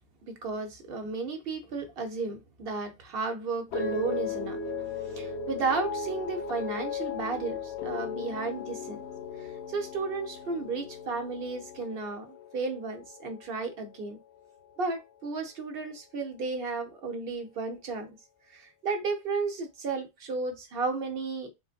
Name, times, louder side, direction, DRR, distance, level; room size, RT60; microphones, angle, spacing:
voice 1, 0.2-4.6 5.1-9.0 9.4-14.2 14.8-18.2 18.5-21.5, right 4 dB, 60° right, 0.9 m, -33 dB
sound 1, 3.7-14.1 14.4-14.9, left 5 dB, 80° left, 0.9 m, -37 dB
3.8 x 2.5 x 2.4 m
omnidirectional pair, 1.1 m